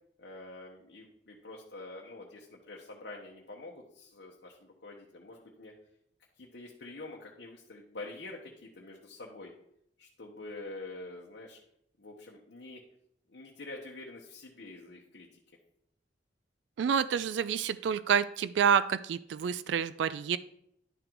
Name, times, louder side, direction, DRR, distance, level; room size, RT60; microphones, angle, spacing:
voice 1, 0.2-5.7 6.4-9.5 10.0-11.6 12.0-12.8 13.3-15.3, left 2 dB, 65° left, -2 dB, 0.9 m, -46 dB
voice 2, 16.8-20.4, right 7 dB, 75° right, 15 dB, 0.3 m, -28 dB
11.0 x 3.8 x 4.5 m, 0.74 s
head